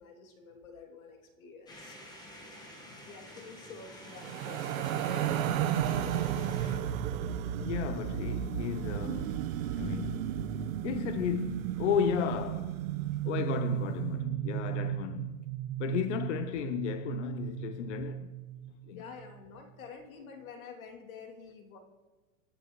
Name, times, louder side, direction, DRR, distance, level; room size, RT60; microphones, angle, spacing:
voice 1, 0.0-2.1 2.8-5.4 13.1-13.6 14.5-14.8 18.9-21.8, left 5 dB, 80° left, 2.8 m, -49 dB
sound 1, 1.7-6.7, equal, 10° left, 1.4 m, -49 dB
sound 2, 4.1-13.4, right 9 dB, 75° right, 1.0 m, -34 dB
voice 2, 7.6-9.4 9.8-10.4 10.8-12.8 13.3-15.4 15.8-18.3 18.9-19.0, left 9 dB, 60° left, 0.7 m, -34 dB
sound 3, 9.1-19.4, right 13 dB, 55° right, 0.5 m, -37 dB
26.0 x 10.5 x 3.1 m
supercardioid pair, 170°, 41 cm